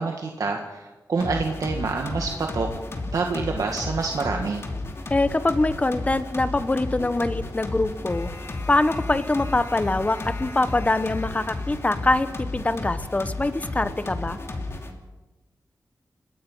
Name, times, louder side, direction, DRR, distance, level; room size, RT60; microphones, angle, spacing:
voice 1, 0.0-2.7 3.1-4.6, right 4 dB, 65° right, 2 dB, 1.9 m, -27 dB
sound 1, 1.2-14.9, left 2 dB, 40° left, 2.7 m, -33 dB
voice 2, 5.1-8.3 8.7-14.4, left 2 dB, 20° left, 12 dB, 1.1 m, -24 dB
30.0 x 17.5 x 5.6 m, 1.1 s
wide cardioid pair, 150°, 6 cm